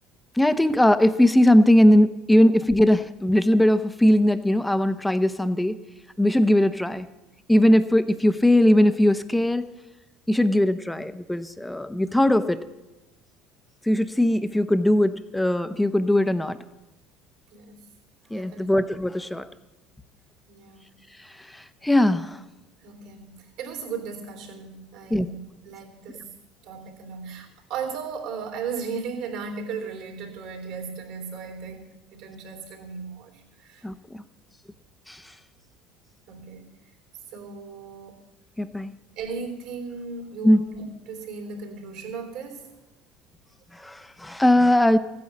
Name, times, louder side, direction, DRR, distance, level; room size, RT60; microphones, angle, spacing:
voice 1, 0.4-5.8 6.2-7.1 7.5-9.7 10.3-12.6 13.9-16.6 18.3-19.5 21.5-22.4 25.1-25.3 33.8-34.2 35.1-35.2 38.6-39.0 40.4-40.6 43.7-45.0, left 1 dB, 5° left, 12 dB, 0.9 m, -20 dB
voice 2, 17.5-17.8 18.3-18.7 20.5-20.9 22.8-26.3 26.6-33.9 36.3-36.7 37.3-38.2 39.1-42.7, right 5 dB, 70° right, 4 dB, 3.5 m, -36 dB
14.5 x 9.5 x 7.2 m, 1.0 s
hypercardioid pair, 80°, 0 cm